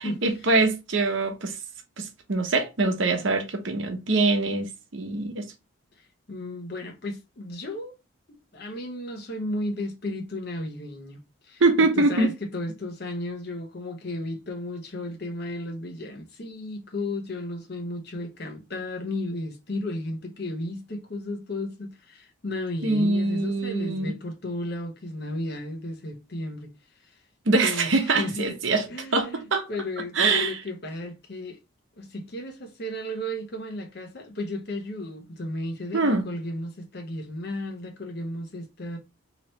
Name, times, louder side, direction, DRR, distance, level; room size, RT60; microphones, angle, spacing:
voice 1, 0.2-1.6 2.0-5.4 11.6-12.3 22.8-24.1 27.5-28.9 29.1-29.7 30.2-30.6 35.9-36.2, right 3 dB, 70° right, 0.8 m, -23 dB
voice 2, 6.0-8.0 8.3-26.7 27.0-27.2 27.6-28.5 28.9-31.6 32.0-39.0, left 1 dB, 55° left, 0.8 m, -34 dB
3.1 x 2.9 x 3.0 m
head